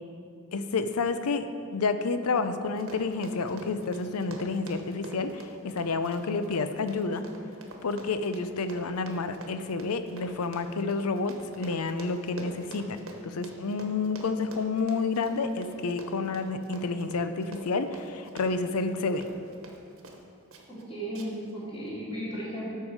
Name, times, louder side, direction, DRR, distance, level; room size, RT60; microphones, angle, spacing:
voice 1, 0.5-7.3 7.8-19.3, left 4 dB, 85° left, 10 dB, 0.6 m, -30 dB
Run, 2.6-20.2 20.5-20.8 21.1-21.5 21.9-22.0, right 2 dB, 65° right, 1.2 m, -46 dB
voice 2, 20.7-22.8, equal, 25° left, -9 dB, 2.7 m, -35 dB
13.0 x 5.6 x 4.7 m, 2.5 s
head